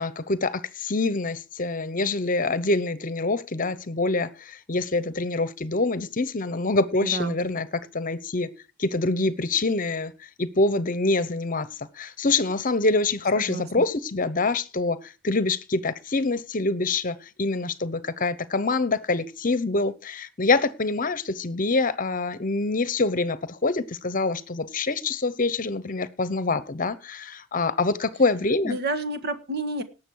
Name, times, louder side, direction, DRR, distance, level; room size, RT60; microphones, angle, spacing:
voice 1, 0.0-8.5 8.8-10.1 10.4-11.7 11.9-28.8, left 3 dB, 40° left, 0.9 m, -25 dB
voice 2, 7.0-7.3 13.3-13.7 28.6-29.8, right 2 dB, 55° right, 1.6 m, -29 dB
18.5 x 7.1 x 4.7 m
head